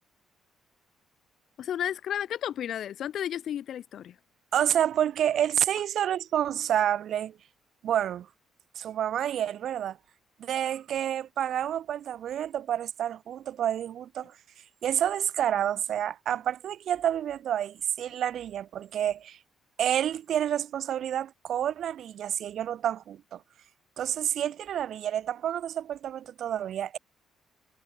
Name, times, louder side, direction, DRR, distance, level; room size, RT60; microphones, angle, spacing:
voice 1, 1.6-4.1, left 10 dB, 70° left, 1.6 m, -32 dB
voice 2, 4.5-7.3 7.8-8.3 8.8-10.0 10.4-14.3 14.8-19.4 19.8-23.4 24.0-27.0, right 10 dB, 70° right, 0.7 m, -29 dB
cardioid pair, 90°, 0 cm